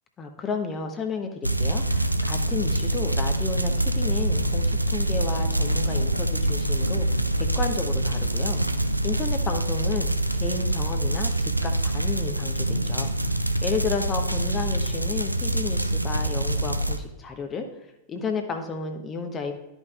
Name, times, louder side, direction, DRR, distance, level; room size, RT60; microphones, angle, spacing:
voice 1, 0.2-7.1 7.3-8.6 9.0-10.1 10.3-13.1 13.6-17.7 18.1-19.5, left 4 dB, 25° left, 4 dB, 0.8 m, -32 dB
sound 1, 1.4-17.0, right 1 dB, 85° right, 0.4 m, -25 dB
12.0 x 5.4 x 2.3 m, 0.93 s
figure-of-eight pair, 90°, 0 cm